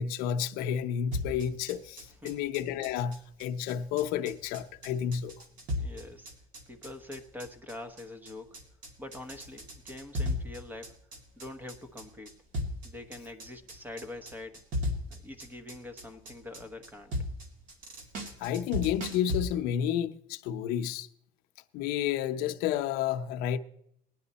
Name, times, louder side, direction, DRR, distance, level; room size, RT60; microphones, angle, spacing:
voice 1, 0.0-5.3 18.4-21.1 21.7-23.6, left 9 dB, 75° left, 0.7 m, -31 dB
sound 1, 1.1-19.4, left 1 dB, 60° right, 2.3 m, -36 dB
voice 2, 5.8-6.3 6.7-8.6 9.0-11.0 11.4-12.3 12.8-14.6 15.1-17.1, left 2 dB, 10° right, 1.0 m, -44 dB
19.0 x 10.5 x 4.2 m
cardioid pair, 150°, 15 cm